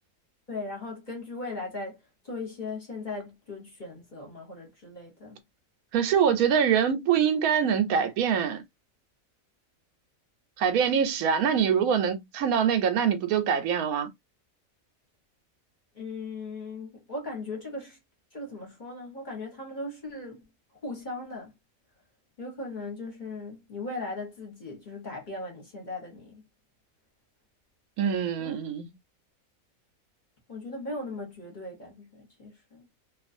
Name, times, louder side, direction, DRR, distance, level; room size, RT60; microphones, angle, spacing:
voice 1, 0.5-5.4 15.9-18.0 18.3-20.4 20.8-21.5 22.4-26.4 28.4-28.5 30.5-32.8, left 2 dB, 35° left, 1.1 m, -38 dB
voice 2, 5.9-8.6 10.6-14.1 28.0-28.9, right 7 dB, 85° right, 1.1 m, -24 dB
2.5 x 2.4 x 2.5 m
omnidirectional pair, 1.5 m